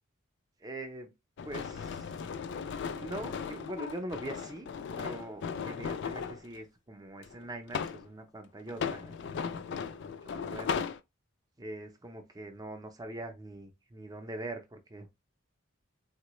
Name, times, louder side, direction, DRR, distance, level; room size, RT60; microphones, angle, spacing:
voice 1, 0.6-1.1 1.4-2.2 2.9-4.7 5.0-10.9 11.6-15.1, right 1 dB, 20° right, 0.5 m, -43 dB
sound 1, 1.4-6.4 7.2-8.1 8.7-11.0, left 6 dB, 55° left, 0.3 m, -37 dB
3.7 x 2.1 x 3.0 m
head